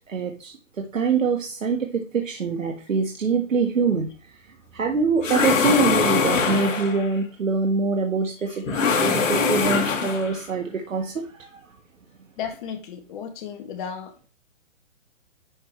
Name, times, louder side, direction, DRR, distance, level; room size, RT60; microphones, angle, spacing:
voice 1, 0.1-4.1 4.4-11.6, right 4 dB, 85° right, 1.6 m, -24 dB
sound 1, 5.2-7.1 8.7-10.4, left 5 dB, 75° left, 2.0 m, -22 dB
voice 2, 12.4-14.2, left 7 dB, 40° left, 2.2 m, -34 dB
11.0 x 4.7 x 3.2 m
hypercardioid pair, 145°, 38 cm